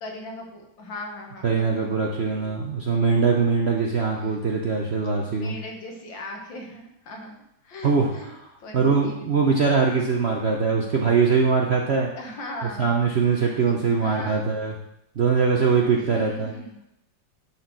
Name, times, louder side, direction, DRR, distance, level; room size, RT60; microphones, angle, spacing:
voice 1, 0.0-2.7 4.1-4.6 5.3-8.3 8.6-9.3 12.2-12.9 13.6-14.5 16.0-16.8, left 1 dB, 80° left, 1 dB, 2.2 m, -39 dB
voice 2, 1.4-5.6 7.8-8.1 8.7-12.1 12.8-14.7 15.2-16.5, right 5 dB, 55° right, 0 dB, 0.7 m, -22 dB
10.5 x 4.3 x 4.6 m, 0.80 s
omnidirectional pair, 2.0 m